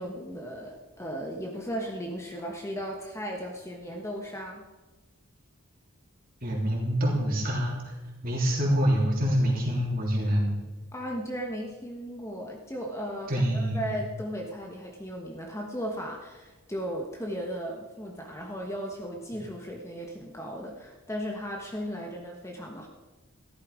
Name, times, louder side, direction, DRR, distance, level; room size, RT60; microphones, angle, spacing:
voice 1, 0.0-4.6 10.9-22.9, equal, 15° left, 1 dB, 1.3 m, -36 dB
voice 2, 6.4-7.9 8.2-10.5 13.3-13.9, equal, 40° right, -2 dB, 3.5 m, -26 dB
14.0 x 12.5 x 5.0 m, 1.2 s
head